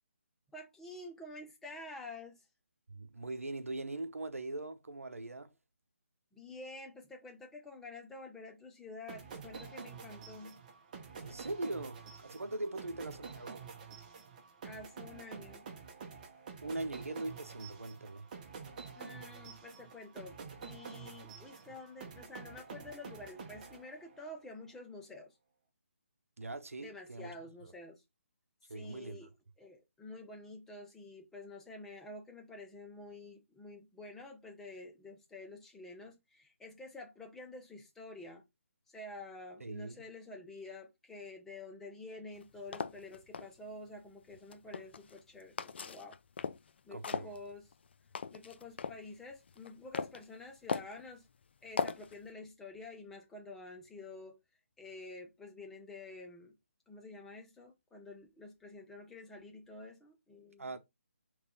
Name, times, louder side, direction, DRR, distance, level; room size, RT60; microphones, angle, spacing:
voice 1, 0.5-2.4 6.3-10.6 14.6-15.6 18.9-25.3 26.8-28.0 28.6-29.3 29.6-38.4 38.9-46.2 46.8-47.6 48.3-51.3 51.6-54.4 54.8-56.5 56.9-60.7, left 2 dB, 5° left, 0.7 m, -49 dB
voice 2, 2.9-5.5 11.2-13.7 16.6-18.3 26.4-27.4 27.6-27.7 28.7-29.3 39.6-40.0 46.9-47.4 60.6-60.8, right 2 dB, 90° right, 0.8 m, -41 dB
sound 1, 9.1-24.4, right 5 dB, 35° right, 0.9 m, -49 dB
sound 2, 42.3-43.5 44.3-45.2 45.6-46.7 47.0-49.0 49.5-50.2 50.7-51.0 51.8-52.2, left 6 dB, 50° left, 0.4 m, -38 dB
4.0 x 3.2 x 3.8 m
figure-of-eight pair, 155°, 7 cm